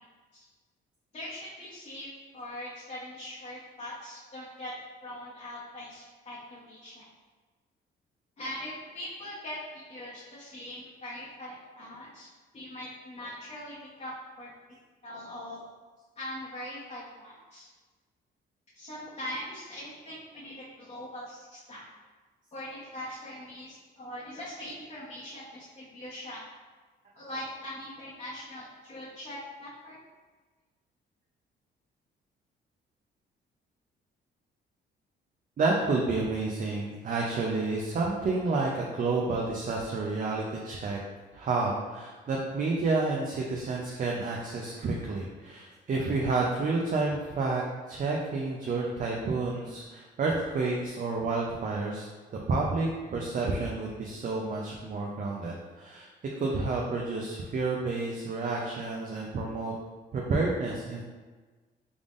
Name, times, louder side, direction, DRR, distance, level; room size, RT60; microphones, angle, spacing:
voice 1, 1.1-2.1 2.3-4.7 5.0-7.1 8.4-12.3 12.5-14.5 15.0-15.6 16.2-17.7 18.7-21.8 22.5-26.4 27.2-30.0, left 1 dB, 30° left, -9 dB, 1.0 m, -41 dB
voice 2, 35.6-41.0 41.3-47.6 47.9-52.0 52.5-56.1 56.4-59.7 60.1-61.0, right 3 dB, 40° right, -2 dB, 0.5 m, -30 dB
3.5 x 3.5 x 2.5 m, 1.3 s
cardioid pair, 90°, 20 cm